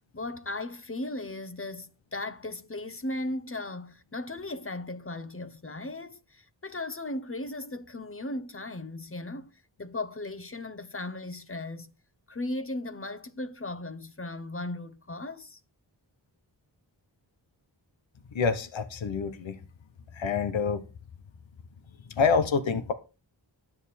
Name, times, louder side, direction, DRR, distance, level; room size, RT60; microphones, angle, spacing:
voice 1, 0.1-11.9 12.3-15.6, left 2 dB, 30° left, 1.0 m, -37 dB
voice 2, 18.3-19.6 20.1-20.8 22.1-22.9, left 5 dB, 90° left, 1.0 m, -27 dB
11.0 x 7.8 x 4.2 m
cardioid pair, 45°, 45 cm